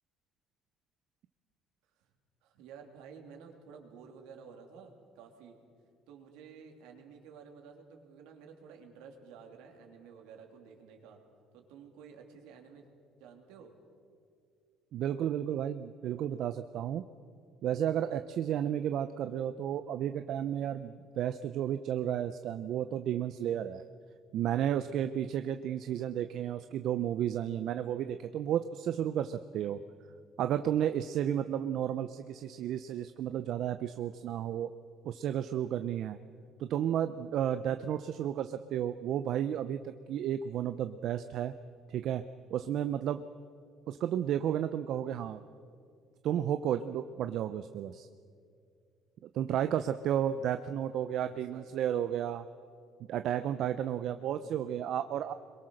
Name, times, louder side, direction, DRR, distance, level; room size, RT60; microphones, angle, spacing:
voice 1, 2.4-5.6 6.1-11.2 11.5-12.9 13.2-13.7 22.3-22.6 27.9-28.2 29.6-29.9 50.7-51.7 53.2-53.6 54.4-54.8, right 6 dB, 85° right, 2 dB, 3.1 m, -53 dB
voice 2, 14.9-17.0 17.6-23.8 24.3-29.8 30.4-34.7 35.0-36.2 36.6-41.5 41.9-42.2 42.5-43.2 43.9-45.4 46.2-48.1 49.3-52.4 53.1-55.3, right 10 dB, 65° right, 10 dB, 0.7 m, -32 dB
26.0 x 22.5 x 6.5 m, 2.3 s
supercardioid pair, 85°, 0 cm